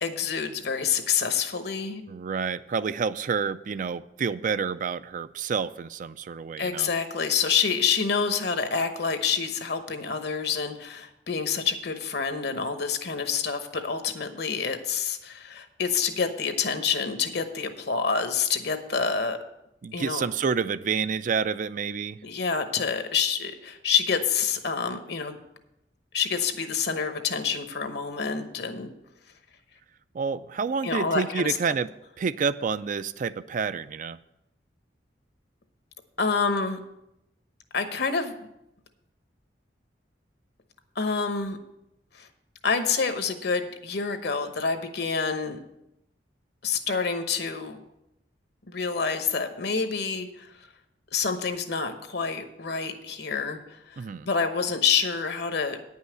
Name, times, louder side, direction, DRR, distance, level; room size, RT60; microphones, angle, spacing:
voice 1, 0.0-2.0 6.6-19.4 19.9-20.3 22.2-25.4 26.1-28.9 30.8-31.6 36.2-36.8 37.7-38.3 41.0-41.6 42.1-42.3 42.6-45.6 46.6-47.8 48.7-50.5 51.1-55.9, left 5 dB, 65° left, 8 dB, 1.0 m, -27 dB
voice 2, 2.1-6.9 19.8-22.2 30.1-31.9 32.2-34.2 54.0-54.3, right 5 dB, 45° right, 13 dB, 0.4 m, -29 dB
9.6 x 5.6 x 7.9 m, 0.85 s
head